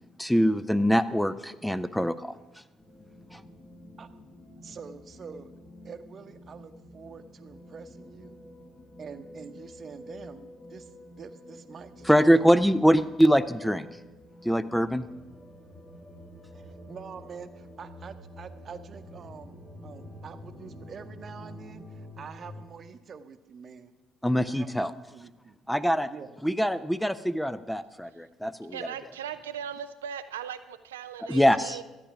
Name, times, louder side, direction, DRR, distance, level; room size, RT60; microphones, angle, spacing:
voice 1, 0.2-2.4 3.3-3.4 12.0-13.9 14.4-15.1 24.2-24.9 25.7-26.1 26.4-28.8 31.3-31.8, equal, 5° left, 13 dB, 0.6 m, -23 dB
sound 1, 2.8-22.6, left 1 dB, 50° left, 4.0 m, -48 dB
voice 2, 4.6-5.5 5.8-8.4 9.0-10.9 11.2-12.4 16.5-23.9 24.5-25.6 26.1-26.3, right 6 dB, 45° right, 10 dB, 0.9 m, -46 dB
voice 3, 28.7-31.8, right 8 dB, 85° right, 10 dB, 0.4 m, -38 dB
13.5 x 9.0 x 5.9 m, 1.1 s
hypercardioid pair, 50°, 0 cm